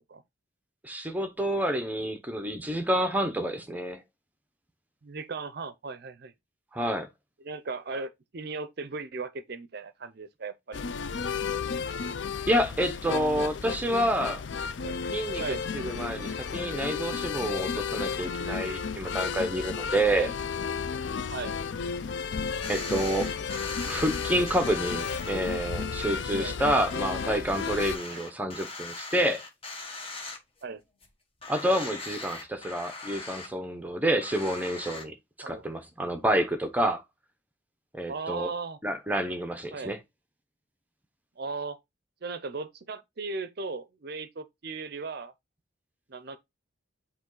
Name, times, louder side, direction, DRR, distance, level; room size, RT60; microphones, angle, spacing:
voice 1, 0.8-4.0 6.7-7.1 12.5-14.4 15.1-15.4 15.7-20.3 22.7-23.3 23.8-29.4 31.5-35.1 35.4-37.0 37.9-38.5 38.8-40.0, right 1 dB, 10° right, 0.8 m, -28 dB
voice 2, 5.0-6.3 7.4-10.8 14.8-15.0 15.4-15.6 20.1-20.4 21.3-21.6 26.4-26.6 28.1-28.2 30.6-30.8 35.4-35.7 38.1-38.8 39.7-40.0 41.4-41.8 42.2-45.3 46.1-46.4, right 4 dB, 50° right, 0.5 m, -37 dB
sound 1, 10.7-28.0, left 6 dB, 60° left, 0.4 m, -33 dB
sound 2, 22.6-25.3 25.8-25.9 26.3-26.4 26.6-30.7 31.0-31.1 31.4-33.5 34.2-35.0, left 3 dB, 30° left, 1.3 m, -40 dB
8.1 x 3.1 x 3.8 m
head